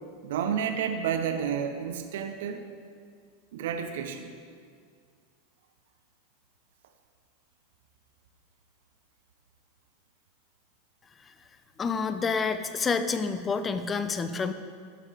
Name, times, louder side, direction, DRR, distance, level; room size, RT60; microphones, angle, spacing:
voice 1, 0.2-2.6 3.5-4.3, right 8 dB, 70° right, 6 dB, 0.6 m, -30 dB
voice 2, 11.8-14.5, left 5 dB, 25° left, 10 dB, 0.6 m, -28 dB
12.5 x 4.9 x 4.8 m, 2.1 s
hypercardioid pair, 95°, 0 cm